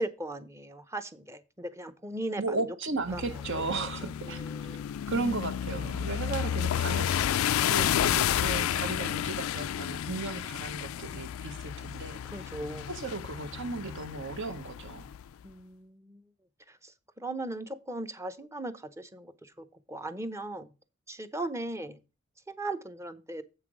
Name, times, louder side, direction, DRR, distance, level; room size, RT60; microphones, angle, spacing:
voice 1, 0.0-2.6 3.1-3.3 4.2-4.9 12.2-12.9 15.4-16.2 16.7-20.7 21.1-22.0 22.5-23.4, right 1 dB, 15° right, 0.7 m, -38 dB
voice 2, 2.4-4.8 5.1-7.3 7.7-12.2 12.9-15.1, right 3 dB, 60° right, 1.0 m, -35 dB
sound 1, 3.1-15.2, left 10 dB, 80° left, 0.3 m, -31 dB
7.8 x 5.8 x 4.9 m
head